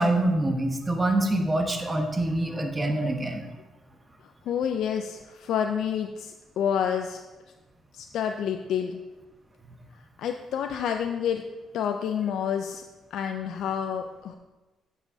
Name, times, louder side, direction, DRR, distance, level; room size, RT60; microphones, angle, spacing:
voice 1, 0.0-3.4, right 1 dB, 20° right, 4 dB, 1.1 m, -25 dB
voice 2, 4.5-7.2 7.9-9.0 10.2-11.4 11.7-12.8 13.1-14.4, left 8 dB, 75° left, 5 dB, 0.4 m, -28 dB
9.1 x 7.3 x 2.7 m, 1.2 s
cardioid pair, 90°, 0 cm